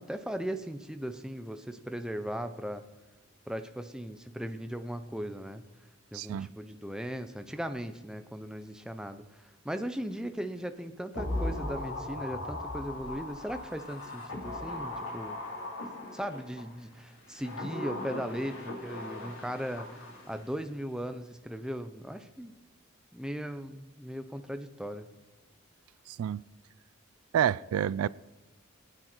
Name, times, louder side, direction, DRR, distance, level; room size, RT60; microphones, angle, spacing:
voice 1, 0.0-2.8 3.5-5.6 6.1-15.4 16.1-22.5 23.1-25.1, equal, 5° right, 0.6 m, -38 dB
voice 2, 6.1-6.5 26.1-26.4 27.3-28.1, right 9 dB, 85° right, 0.3 m, -28 dB
sound 1, 11.2-16.6 17.2-20.5 20.8-20.9, left 1 dB, 65° left, 3.9 m, -38 dB
19.0 x 9.0 x 4.5 m
head